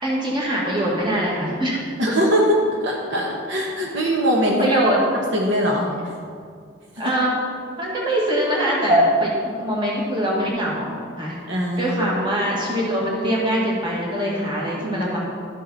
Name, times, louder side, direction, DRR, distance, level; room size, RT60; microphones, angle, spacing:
voice 1, 0.0-1.8 4.6-5.0 7.0-7.4 7.8-10.9 11.2-11.4 11.7-15.2, equal, 25° right, -4 dB, 2.0 m, -22 dB
voice 2, 2.0-4.8 5.3-5.9 11.5-12.0, equal, 65° right, -1 dB, 1.2 m, -21 dB
12.5 x 7.5 x 4.1 m, 2.2 s
head